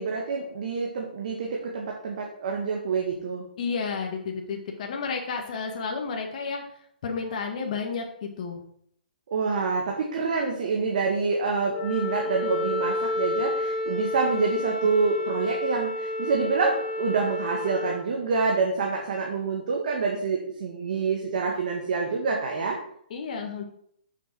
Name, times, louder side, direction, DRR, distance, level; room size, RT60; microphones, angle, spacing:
voice 1, 0.0-3.4 9.3-22.8, right 4 dB, 50° right, 0 dB, 2.0 m, -27 dB
voice 2, 3.6-6.6 7.0-8.6 23.1-23.6, left 5 dB, 45° left, 2 dB, 1.7 m, -31 dB
Wind instrument woodwind instrument, 11.7-18.0, left 1 dB, 25° left, 3.3 m, -30 dB
9.9 x 7.4 x 4.6 m, 0.67 s
figure-of-eight pair, 130°, 5 cm